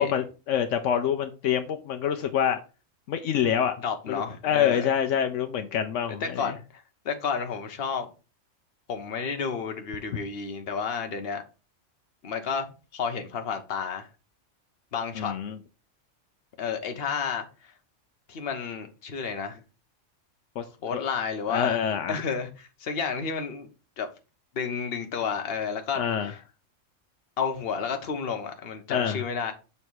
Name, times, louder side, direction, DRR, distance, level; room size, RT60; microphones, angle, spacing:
voice 1, 0.0-2.6 3.1-3.7 4.1-6.6 15.2-15.6 20.6-20.7 20.9-21.0 21.5-22.2 26.0-26.3 28.9-29.2, left 8 dB, 80° left, 1.0 m, -26 dB
voice 2, 3.8-4.9 6.2-8.1 8.9-11.4 12.2-14.1 14.9-15.3 16.6-17.7 18.3-19.6 20.8-21.8 22.1-23.7 24.0-24.1 24.5-26.0 26.3-26.4 27.4-29.5, left 6 dB, 55° left, 1.1 m, -31 dB
6.8 x 3.2 x 4.6 m
omnidirectional pair, 1.3 m